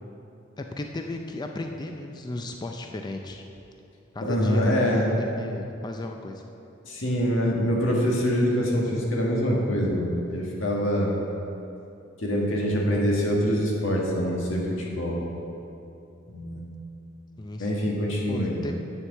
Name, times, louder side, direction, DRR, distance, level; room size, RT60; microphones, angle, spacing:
voice 1, 0.6-3.4 4.1-4.7 5.2-6.4 17.4-17.7 18.3-18.8, left 2 dB, 20° left, 3 dB, 0.4 m, -35 dB
voice 2, 4.2-5.1 6.8-11.2 12.2-15.2 16.3-16.6 17.6-18.6, equal, 85° left, -2 dB, 1.7 m, -25 dB
9.9 x 4.6 x 7.2 m, 2.8 s
head